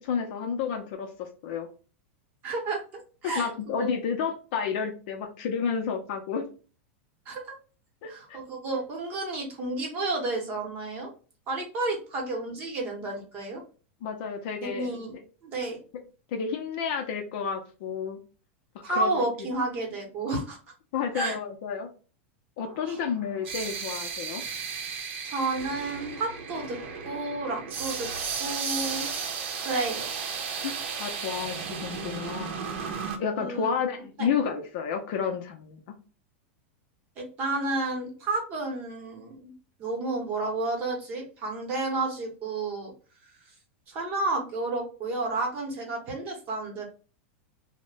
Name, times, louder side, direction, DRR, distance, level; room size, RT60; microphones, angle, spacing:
voice 1, 0.0-1.7 3.4-6.5 8.0-8.4 14.0-15.0 16.3-18.2 19.0-19.2 20.9-21.9 22.6-24.4 30.6-32.5 33.2-35.8, left 6 dB, 45° left, 4 dB, 0.5 m, -31 dB
voice 2, 2.4-2.8 3.2-3.5 3.8-3.9 7.3-7.5 8.1-11.1 11.5-13.6 14.6-15.8 18.8-20.6 21.1-21.4 22.9-23.0 25.2-26.8 27.0-28.1 28.4-29.1 29.6-30.1 33.4-33.7 34.2-34.3 37.2-39.5 39.8-42.9 43.9-46.8, right 2 dB, 25° right, 0 dB, 0.9 m, -31 dB
sound 1, 22.6-33.2, right 6 dB, 60° right, 0.7 m, -34 dB
2.8 x 2.1 x 3.3 m, 0.36 s
supercardioid pair, 170°, 7 cm